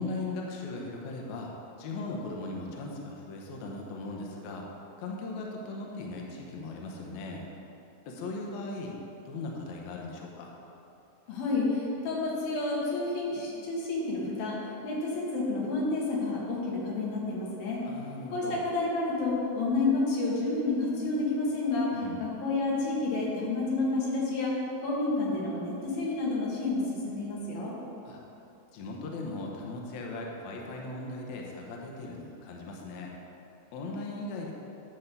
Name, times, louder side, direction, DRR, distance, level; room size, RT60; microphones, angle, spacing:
voice 1, 0.0-1.5 1.8-4.6 5.0-7.4 8.1-9.0 9.3-10.5 17.8-18.6 21.9-22.2 28.1-28.2 28.7-33.1 33.7-34.5, left 2 dB, 70° left, -1 dB, 1.9 m, -38 dB
voice 2, 11.3-17.8 18.3-27.7, left 2 dB, 85° left, -4 dB, 3.3 m, -30 dB
10.0 x 3.7 x 6.7 m, 2.8 s
omnidirectional pair, 4.1 m